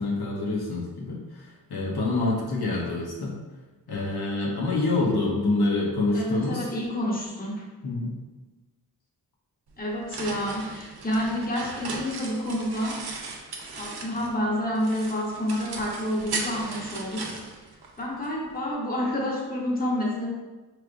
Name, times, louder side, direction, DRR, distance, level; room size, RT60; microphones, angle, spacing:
voice 1, 0.0-3.3 3.9-6.7 7.8-8.1, left 2 dB, 75° left, -3 dB, 0.9 m, -26 dB
voice 2, 6.1-7.6 9.8-13.0 13.7-17.3 18.0-20.3, left 1 dB, 25° left, -4 dB, 0.9 m, -29 dB
sound 1, 9.7-14.4 14.8-18.3, right 3 dB, 75° right, 0.7 m, -37 dB
4.9 x 3.2 x 2.5 m, 1.2 s
wide cardioid pair, 100°, 38 cm